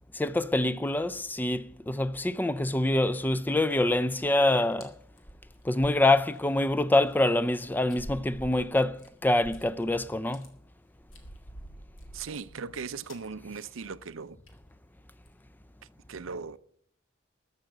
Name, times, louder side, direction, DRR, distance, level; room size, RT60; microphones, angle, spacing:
voice 1, 0.1-4.9 5.6-10.5, left 2 dB, 10° left, 0.4 m, -25 dB
sound 1, 3.7-3.8 4.1-4.4 4.8-4.9 5.2-6.7 7.1-7.2 7.9-9.9 10.2-10.5 11.0-12.8 13.1-13.3 13.6-13.8 14.0-14.1 14.5-14.7 15.1-15.4, equal, 90° left, 2.4 m, -47 dB
voice 2, 12.1-14.4 16.1-16.6, right 5 dB, 90° right, 0.6 m, -38 dB
13.5 x 6.4 x 8.7 m
head